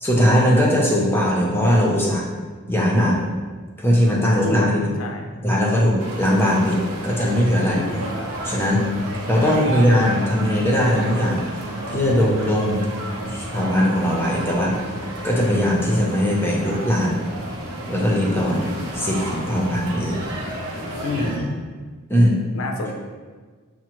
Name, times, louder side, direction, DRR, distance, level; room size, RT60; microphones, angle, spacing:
voice 1, 0.0-2.3 2.7-3.2 3.8-4.9 5.4-7.8 8.4-8.9 9.3-11.4 11.9-12.9 13.3-14.8 15.2-17.2 17.9-18.7 18.9-20.2 21.2-21.5 22.1-22.4, equal, 10° left, -3 dB, 0.6 m, -20 dB
sound 1, 6.0-21.4, right 1 dB, 80° right, 0.7 m, -31 dB
voice 2, 21.0-21.4 22.5-22.9, left 3 dB, 65° left, 2 dB, 0.5 m, -28 dB
6.0 x 2.0 x 3.0 m, 1.5 s
head